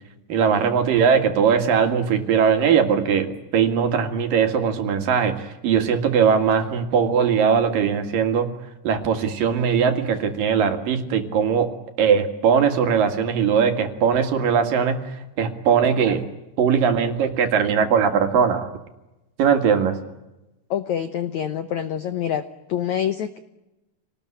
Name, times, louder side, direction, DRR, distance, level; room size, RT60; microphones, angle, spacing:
voice 1, 0.3-8.5 8.8-11.7 12.0-15.1 15.4-16.2 16.6-18.7 19.4-20.0, right 7 dB, 60° right, 7 dB, 3.5 m, -20 dB
voice 2, 20.7-22.4 22.7-23.4, left 10 dB, 75° left, 11 dB, 1.7 m, -26 dB
27.5 x 19.5 x 9.9 m, 0.97 s
omnidirectional pair, 4.7 m